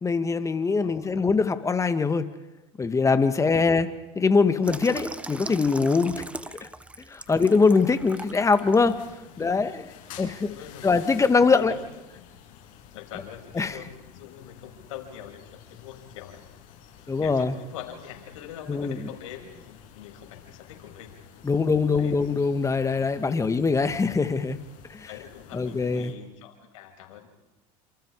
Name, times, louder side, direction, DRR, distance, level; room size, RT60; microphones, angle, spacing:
voice 1, 0.0-2.3 2.8-3.9 4.2-6.2 6.6-6.7 7.1-9.0 9.4-9.9 10.2-10.5 10.8-11.7 13.6-13.8 17.1-17.5 18.7-19.0 21.4-24.6 24.9-25.1 25.5-26.1, left 4 dB, 20° left, 10 dB, 2.1 m, -22 dB
voice 2, 0.8-1.3 7.3-7.6 8.8-9.8 10.1-10.9 11.2-11.8 12.1-12.3 12.9-16.4 16.8-16.9 17.2-21.2 21.5-21.6 22.0-22.2 22.8-22.9 23.3-23.6 25.1-27.3, left 10 dB, 85° left, 2 dB, 6.6 m, -44 dB
Water tap faucet / Sink (filling or washing), 4.6-8.9 9.4-9.6, right 2 dB, 5° right, 1.3 m, -39 dB
sound 1, 7.2-26.1, left 9 dB, 60° left, 7.6 m, -50 dB
29.5 x 28.0 x 5.0 m, 1.0 s
supercardioid pair, 100°, 16 cm